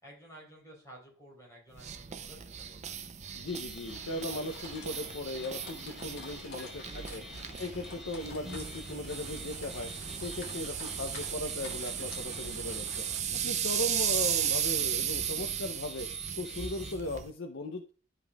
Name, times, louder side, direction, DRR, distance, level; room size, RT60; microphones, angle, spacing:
voice 1, 0.0-3.0 6.8-7.7, right 1 dB, 15° left, -3 dB, 4.0 m, -53 dB
sound 1, 1.8-17.3, right 9 dB, 35° right, 0.5 m, -36 dB
voice 2, 3.3-7.2 7.6-9.9 10.2-16.1 16.4-17.9, left 2 dB, 70° left, 4 dB, 0.7 m, -38 dB
sound 2, 3.5-16.9, equal, ahead, 1.0 m, -50 dB
sound 3, 3.9-13.2, left 2 dB, 50° left, 2.1 m, -49 dB
12.0 x 5.2 x 2.3 m, 0.39 s
head